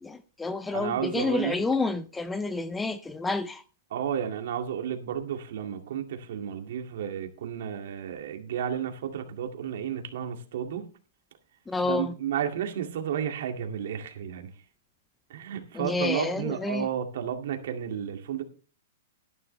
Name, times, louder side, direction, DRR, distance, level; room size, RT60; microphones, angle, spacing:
voice 1, 0.0-3.6 11.7-12.1 15.7-16.9, left 3 dB, 5° left, 0.4 m, -29 dB
voice 2, 0.7-1.6 3.9-10.9 11.8-14.5 15.3-18.4, right 9 dB, 60° right, 2.1 m, -32 dB
12.5 x 11.0 x 3.2 m
hypercardioid pair, 165°, 0 cm